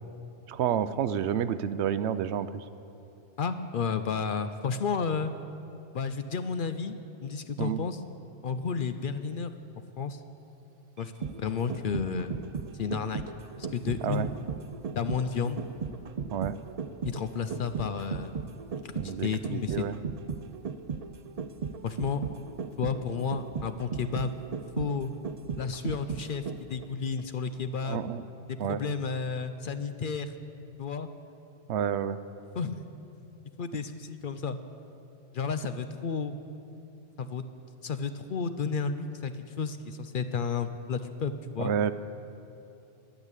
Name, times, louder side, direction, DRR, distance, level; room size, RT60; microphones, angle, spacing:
voice 1, 0.5-2.6 7.6-7.8 14.0-14.3 16.3-16.5 19.0-19.9 27.9-28.2 28.6-28.8 31.7-32.2 41.6-41.9, right 9 dB, 70° right, 13 dB, 0.8 m, -29 dB
voice 2, 3.4-5.3 5.9-8.0 8.4-9.5 10.0-10.2 11.0-12.3 12.8-13.2 13.6-14.3 15.0-15.6 17.0-18.3 18.8-20.0 21.8-22.2 22.8-24.3 24.8-25.1 25.6-28.0 28.5-30.3 30.8-31.1 32.6-32.8 33.6-34.6 35.3-36.3 37.2-37.5 37.8-39.3 39.6-41.7, left 5 dB, 55° left, 10 dB, 0.7 m, -32 dB
sound 1, 11.0-26.8 27.2-27.3, right 6 dB, 50° right, 0.4 m, -36 dB
11.5 x 10.5 x 8.2 m, 2.8 s
omnidirectional pair, 1.2 m